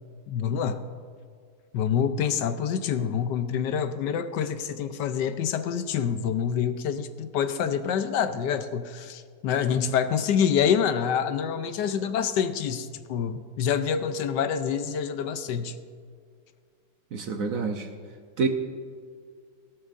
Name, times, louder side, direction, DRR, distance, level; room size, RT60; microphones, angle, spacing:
voice 1, 0.3-0.8 1.7-15.7, left 7 dB, 75° left, 10 dB, 1.3 m, -26 dB
voice 2, 17.1-17.9 18.4-18.5, right 5 dB, 60° right, 5 dB, 1.1 m, -27 dB
17.0 x 13.0 x 2.5 m, 2.1 s
omnidirectional pair, 1.9 m